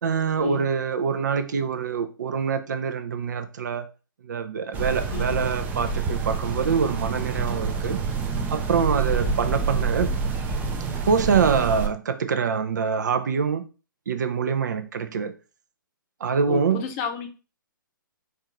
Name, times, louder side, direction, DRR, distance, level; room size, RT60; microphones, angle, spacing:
voice 1, 0.0-3.9 4.2-8.0 8.5-10.1 11.1-13.7 14.1-15.3 16.2-16.8, right 6 dB, 55° right, 0.6 m, -25 dB
sound 1, 4.7-11.9, right 4 dB, 15° right, 0.5 m, -27 dB
voice 2, 16.5-17.3, left 7 dB, 30° left, 0.8 m, -32 dB
4.5 x 2.6 x 4.4 m
figure-of-eight pair, 125°, 11 cm